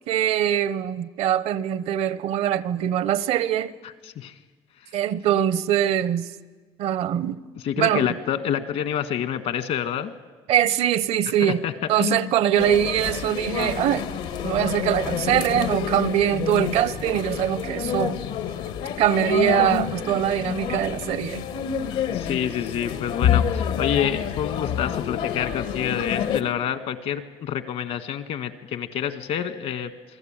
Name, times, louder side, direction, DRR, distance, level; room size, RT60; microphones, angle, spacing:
voice 1, 0.1-3.7 4.9-6.3 6.8-7.4 7.8-8.1 10.5-11.6 11.9-14.1 14.4-18.2 19.0-21.5, right 10 dB, 75° right, 0.9 m, -23 dB
voice 2, 7.6-10.1 11.4-11.7 12.0-12.3 22.1-29.9, left 9 dB, 70° left, 1.6 m, -27 dB
sound 1, 12.6-26.4, left 9 dB, 90° left, 1.8 m, -28 dB
28.0 x 20.0 x 9.0 m
cardioid pair, 95°, 11 cm